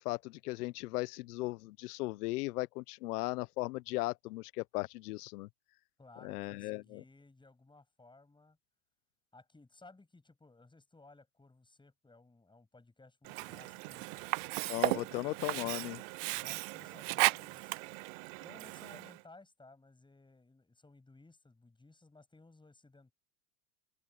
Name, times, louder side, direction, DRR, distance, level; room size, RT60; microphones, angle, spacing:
voice 1, 0.0-5.5 6.2-7.0 14.7-16.0, left 21 dB, 65° left, 1.1 m, -37 dB
voice 2, 6.0-8.6 9.3-14.2 15.0-15.7 16.3-17.8 18.4-23.1, left 3 dB, 10° left, 7.7 m, -59 dB
Sink (filling or washing), 13.2-19.2, right 27 dB, 55° right, 0.5 m, -36 dB
hypercardioid pair, 110°, 49 cm